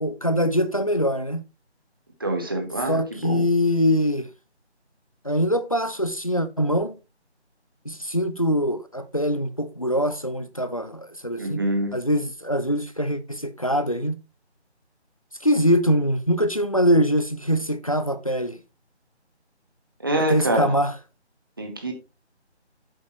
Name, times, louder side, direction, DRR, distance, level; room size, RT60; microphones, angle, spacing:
voice 1, 0.0-1.4 2.9-4.3 5.2-6.9 7.9-11.6 11.9-14.2 15.4-18.6 20.1-20.9, equal, 30° left, 0.5 m, -23 dB
voice 2, 2.2-3.5 11.4-12.0 20.0-20.7 21.6-21.9, right 1 dB, 20° right, 1.1 m, -26 dB
8.7 x 7.5 x 3.0 m
figure-of-eight pair, 170°, 34 cm